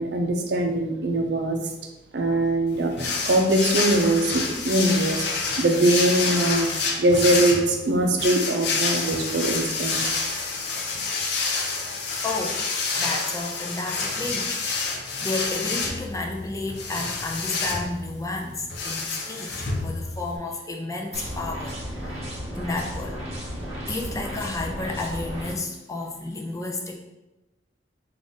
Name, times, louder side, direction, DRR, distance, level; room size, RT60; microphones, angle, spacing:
voice 1, 0.0-1.6 2.1-6.7 7.0-10.1 22.2-22.3, right 1 dB, 65° right, 3 dB, 0.5 m, -22 dB
sound 1, 3.0-20.4, left 4 dB, 65° left, 0.6 m, -28 dB
voice 2, 12.2-12.7 13.0-14.7 15.1-22.2 22.5-23.2 23.9-27.0, left 2 dB, 20° left, 1 dB, 0.5 m, -31 dB
sound 2, 21.1-25.5, equal, 35° right, 0.9 m, -34 dB
3.7 x 2.5 x 3.8 m, 0.99 s
head